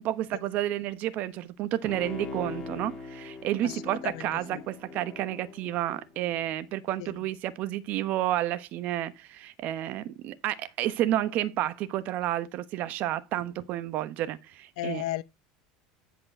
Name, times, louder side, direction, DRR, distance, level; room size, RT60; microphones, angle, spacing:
voice 1, 0.0-15.0, right 13 dB, 55° right, 1.1 m, -31 dB
Bowed string instrument, 1.8-6.4 6.8-6.9, left 3 dB, 25° left, 2.5 m, -41 dB
voice 2, 3.6-4.6 7.0-7.1 14.8-15.2, left 15 dB, 80° left, 0.7 m, -35 dB
10.5 x 5.2 x 4.3 m
supercardioid pair, 115°, 3 cm